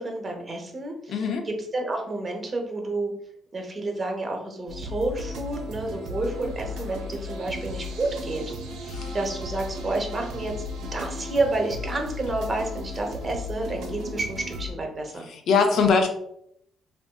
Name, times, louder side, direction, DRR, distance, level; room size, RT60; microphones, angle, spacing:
voice 1, 0.0-3.1 3.5-8.4 8.8-10.5 10.8-15.3, right 2 dB, 35° right, 2 dB, 0.8 m, -30 dB
voice 2, 1.1-1.4 8.9-9.1 15.3-16.1, left 5 dB, 70° left, 4 dB, 0.5 m, -22 dB
sound 1, 4.7-14.7, left 2 dB, 90° right, 0.5 m, -35 dB
3.5 x 2.5 x 2.2 m, 0.71 s
cardioid pair, 90°, 0 cm